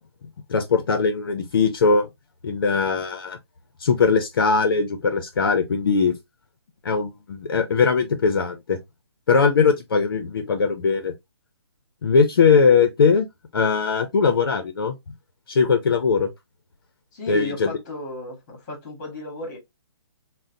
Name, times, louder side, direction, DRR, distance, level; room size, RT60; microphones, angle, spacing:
voice 1, 0.5-2.1 2.4-3.4 3.8-6.2 6.8-8.8 9.3-11.1 12.0-13.2 13.5-14.9 15.5-16.3 17.3-17.7, left 5 dB, 55° left, 0.5 m, -20 dB
voice 2, 17.1-19.6, left 3 dB, 20° left, 1.0 m, -34 dB
3.7 x 2.0 x 2.6 m
hypercardioid pair, 170°, 14 cm